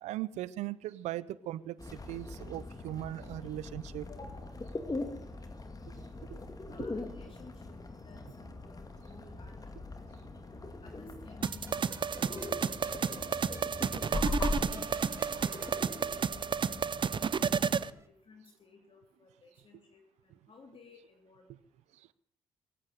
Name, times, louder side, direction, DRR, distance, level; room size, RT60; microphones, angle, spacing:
voice 1, 0.0-4.1 6.0-6.4 6.8-6.9, right 14 dB, 85° right, 19 dB, 0.6 m, -39 dB
sound 1, 1.8-17.9, left 2 dB, 30° left, 2.5 m, -41 dB
voice 2, 4.1-4.5 6.7-9.7 10.8-12.5 12.9-13.4 13.8-21.5, left 4 dB, 50° left, 2 dB, 3.1 m, -56 dB
sound 2, 11.4-18.1, right 2 dB, 25° right, 2.2 m, -52 dB
sound 3, 11.4-17.9, right 6 dB, 45° right, 0.6 m, -31 dB
23.5 x 8.6 x 6.6 m, 0.67 s
supercardioid pair, 50°, 11 cm